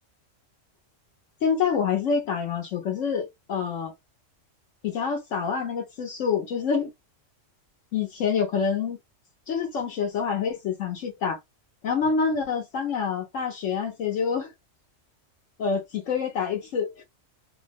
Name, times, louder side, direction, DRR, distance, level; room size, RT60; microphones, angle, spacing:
voice 1, 1.4-3.9 4.8-6.9 7.9-9.0 9.5-11.4 11.8-14.5 15.6-17.0, left 6 dB, 75° left, 1.1 m, -27 dB
2.8 x 2.0 x 3.3 m
omnidirectional pair, 1.3 m